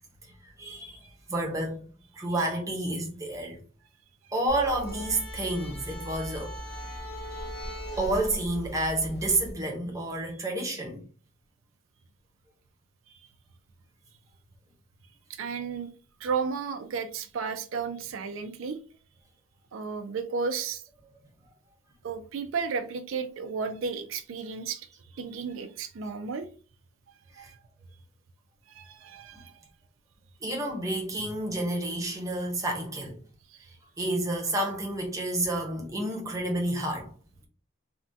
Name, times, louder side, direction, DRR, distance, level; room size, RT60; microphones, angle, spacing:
voice 1, 0.4-1.0 1.3-1.8 2.1-3.6 4.3-6.6 8.0-11.0 27.4-27.5 30.4-33.2 34.0-37.1, right 1 dB, 15° right, 0.7 m, -30 dB
sound 1, 4.5-9.5, equal, 70° left, 1.0 m, -38 dB
voice 2, 15.3-15.9 16.2-18.8 19.7-20.8 22.0-24.9 25.1-26.5 27.4-27.6 28.7-29.5 33.5-33.6, right 5 dB, 85° right, 0.4 m, -33 dB
3.5 x 2.2 x 2.6 m
head